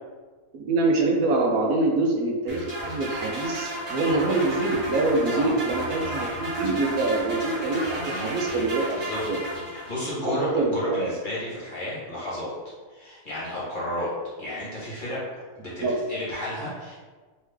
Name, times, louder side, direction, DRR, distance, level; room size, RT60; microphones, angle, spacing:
voice 1, 0.5-9.0 9.3-9.4 10.2-11.1 15.8-15.9, right 2 dB, 80° right, 0 dB, 1.1 m, -25 dB
sound 1, 2.5-10.2, right 1 dB, 25° right, 1.2 m, -33 dB
voice 2, 9.7-12.5 12.9-14.1 14.4-15.2 15.6-17.0, left 1 dB, 35° left, -8 dB, 1.2 m, -32 dB
3.2 x 3.2 x 3.3 m, 1.4 s
omnidirectional pair, 1.6 m